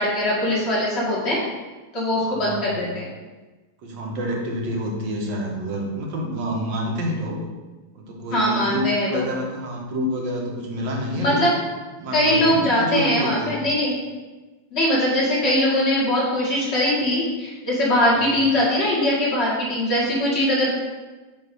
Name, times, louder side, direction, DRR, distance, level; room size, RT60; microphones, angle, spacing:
voice 1, 0.0-1.4 1.9-3.1 8.3-9.2 11.2-11.5 12.1-13.9 14.7-20.7, left 1 dB, 35° left, -7 dB, 2.4 m, -21 dB
voice 2, 2.2-2.8 3.8-7.5 7.9-11.5 12.0-13.6 18.1-18.3, equal, 70° right, 0 dB, 1.9 m, -28 dB
9.1 x 3.1 x 5.4 m, 1.2 s
omnidirectional pair, 2.1 m